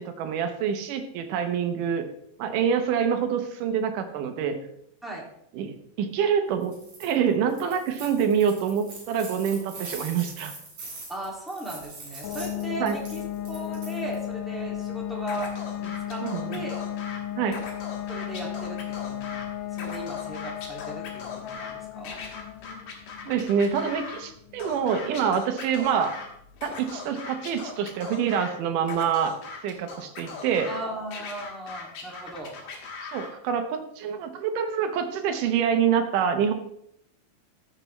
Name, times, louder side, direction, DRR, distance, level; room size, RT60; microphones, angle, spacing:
voice 1, 0.0-2.0 2.4-4.6 5.5-6.7 7.0-10.5 12.8-13.0 16.2-16.6 17.4-17.6 23.3-26.1 26.6-29.3 29.6-30.7 33.1-36.5, right 7 dB, 70° right, 7 dB, 2.2 m, -26 dB
sound 1, 6.6-7.1 7.5-14.2, right 2 dB, 50° right, 4.5 m, -42 dB
voice 2, 11.1-15.5 15.8-16.8 18.1-19.4 19.7-22.2 30.7-32.5, right 1 dB, ahead, -3 dB, 0.8 m, -37 dB
sound 2, 12.2-26.8, left 11 dB, 85° left, 1.9 m, -35 dB
Scratching (performance technique), 15.3-17.2 17.5-19.5 19.7-21.7 22.0-24.2 24.6-26.3 26.6-28.5 28.8-30.8 31.1-33.3, left 4 dB, 65° left, 3.3 m, -39 dB
14.5 x 7.0 x 3.1 m, 0.73 s
omnidirectional pair, 4.2 m